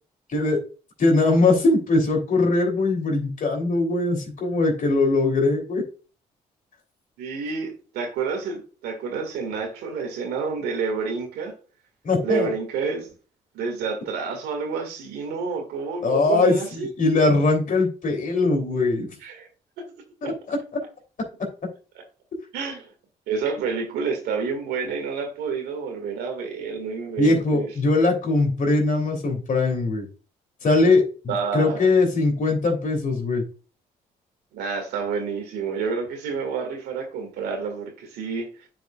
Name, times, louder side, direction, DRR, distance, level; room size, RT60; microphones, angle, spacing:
voice 1, 1.0-5.8 12.0-12.5 16.0-19.1 20.2-20.6 27.2-30.1 30.6-33.4, left 3 dB, 55° left, 2.9 m, -21 dB
voice 2, 7.2-11.5 12.2-13.1 13.5-16.9 19.2-19.5 19.8-19.9 20.2-20.4 22.5-22.9 23.3-27.7 31.3-31.9 34.5-38.7, right 5 dB, 90° right, 1.9 m, -29 dB
9.4 x 4.9 x 2.4 m
supercardioid pair, 60°, 16 cm